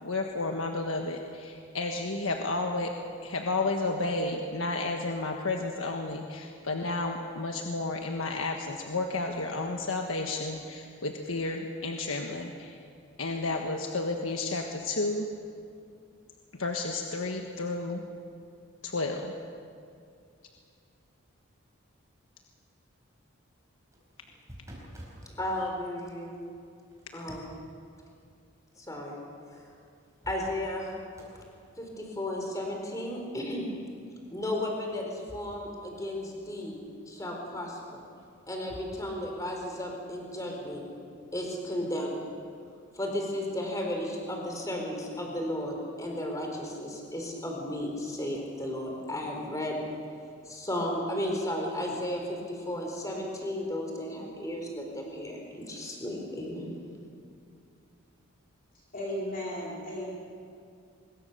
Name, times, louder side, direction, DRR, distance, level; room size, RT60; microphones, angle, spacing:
voice 1, 0.0-2.9 3.2-12.8 13.2-15.3 16.5-18.0 18.8-19.3, left 2 dB, 80° left, 3 dB, 1.5 m, -32 dB
sound 1, 23.8-25.3 26.9-27.7 29.5-29.6 30.0-30.8 31.1-31.5 34.6-35.7 35.9-36.0 37.9-38.9, equal, 15° right, 4.8 m, -49 dB
voice 2, 25.3-26.4 27.1-27.5 28.8-29.2 30.2-30.9 31.8-33.7 34.3-36.8 37.1-38.0 38.5-40.8 41.3-42.2 42.9-49.8 50.5-56.7, left 1 dB, 15° left, 1 dB, 4.1 m, -34 dB
voice 3, 58.9-60.1, equal, 40° left, -5 dB, 4.1 m, -35 dB
24.0 x 22.0 x 6.9 m, 2.4 s
head